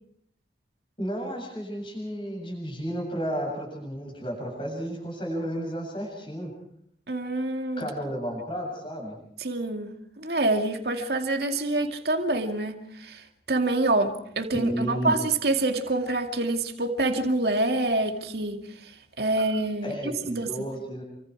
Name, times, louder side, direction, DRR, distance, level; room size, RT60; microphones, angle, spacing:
voice 1, 1.0-6.5 7.8-9.1 14.5-15.1 19.8-21.0, equal, 30° left, -1 dB, 7.5 m, -32 dB
voice 2, 7.1-7.9 9.4-18.9 19.2-20.0 20.3-20.5, right 2 dB, 70° right, 5 dB, 2.3 m, -26 dB
28.5 x 25.0 x 4.8 m, 0.70 s
head